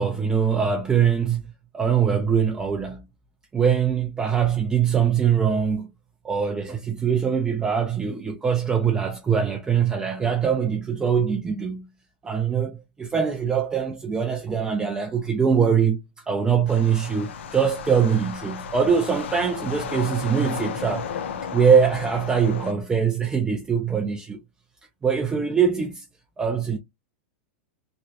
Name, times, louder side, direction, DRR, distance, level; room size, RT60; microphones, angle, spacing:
voice 1, 0.0-1.4 1.7-3.0 3.5-5.9 6.2-11.9 12.2-21.1 21.5-24.4 25.0-26.1 26.4-26.8, right 7 dB, 10° right, 0.4 m, -22 dB
sound 1, 16.7-22.7, left 6 dB, 85° left, 0.5 m, -34 dB
3.0 x 2.4 x 2.6 m
supercardioid pair, 145°, 6 cm